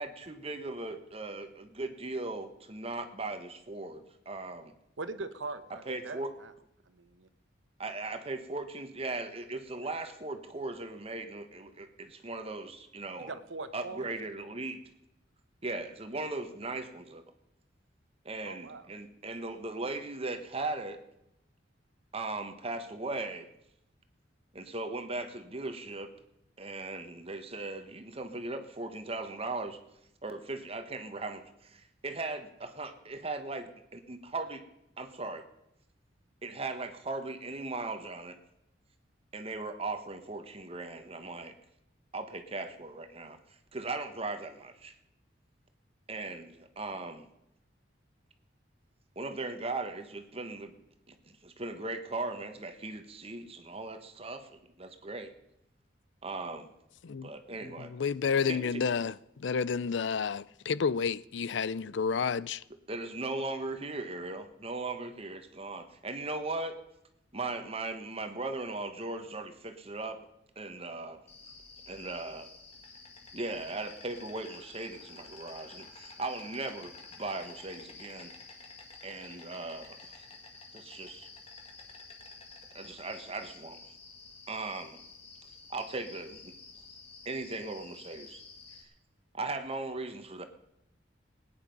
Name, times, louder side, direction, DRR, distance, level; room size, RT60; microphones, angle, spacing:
voice 1, 0.0-4.7 5.9-6.3 7.8-13.3 13.7-14.8 15.6-17.2 18.2-21.0 22.1-23.5 24.5-26.1 26.6-29.8 30.2-34.6 35.0-35.4 36.4-38.4 39.3-41.5 42.1-43.4 43.7-44.9 46.1-47.3 49.1-50.8 51.1-55.3 56.2-56.7 57.2-57.9 58.5-58.8 62.9-66.8 67.3-70.2 70.6-71.2 71.9-72.5 73.3-78.3 79.0-80.3 80.7-81.3 82.7-83.8 84.5-85.0 85.7-86.5 87.2-88.4 89.3-90.5, right 2 dB, 30° right, 1.2 m, -38 dB
voice 2, 5.0-6.5 6.9-7.3 13.2-14.2 18.4-18.9, right 3 dB, 85° right, 1.1 m, -41 dB
voice 3, 57.8-62.6, left 6 dB, 70° left, 0.5 m, -30 dB
Insect, 71.3-88.8, left 4 dB, 35° left, 2.1 m, -51 dB
20.0 x 9.8 x 5.3 m
head